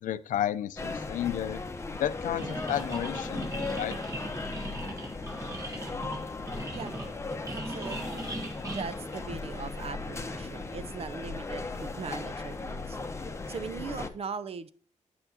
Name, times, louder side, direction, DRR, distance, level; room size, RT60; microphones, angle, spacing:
voice 1, 0.0-1.6 2.0-4.0, left 11 dB, 90° left, 14 dB, 0.5 m, -32 dB
sound 1, 0.8-14.1, left 3 dB, 20° left, 0.8 m, -37 dB
sound 2, 2.4-9.8, right 1 dB, 25° right, 1.6 m, -39 dB
voice 2, 7.4-8.3 8.6-13.0 13.5-14.7, right 5 dB, 50° right, 14 dB, 0.6 m, -40 dB
9.2 x 6.8 x 2.8 m, 0.43 s
cardioid pair, 100°, 13 cm